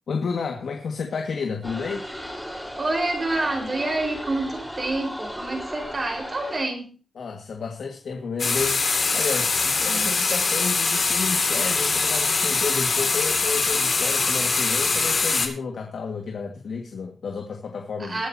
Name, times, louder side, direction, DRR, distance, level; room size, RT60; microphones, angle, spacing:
voice 1, 0.1-2.0 7.2-8.8 9.1-18.3, left 5 dB, 75° left, 3 dB, 1.7 m, -31 dB
sound 1, 1.6-6.6, equal, ahead, 4.1 m, -36 dB
voice 2, 2.8-7.0 9.8-10.1 18.0-18.3, right 2 dB, 30° right, 2 dB, 4.4 m, -28 dB
sound 2, 8.4-15.5, left 4 dB, 45° left, 2.2 m, -23 dB
21.0 x 9.0 x 2.8 m, 0.36 s
wide cardioid pair, 140°, 0 cm